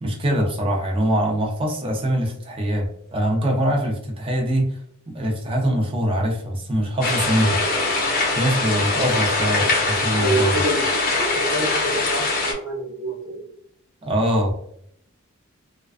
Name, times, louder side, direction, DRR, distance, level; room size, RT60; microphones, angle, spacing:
voice 1, 0.0-4.7 5.1-7.6 8.4-10.5 14.0-14.5, equal, 25° right, 1 dB, 0.5 m, -23 dB
sound 1, 7.0-12.5, left 3 dB, 40° left, 0.6 m, -22 dB
voice 2, 8.9-9.2 10.1-13.4, right 1 dB, 60° right, -3 dB, 0.9 m, -27 dB
2.3 x 2.2 x 2.4 m, 0.70 s
head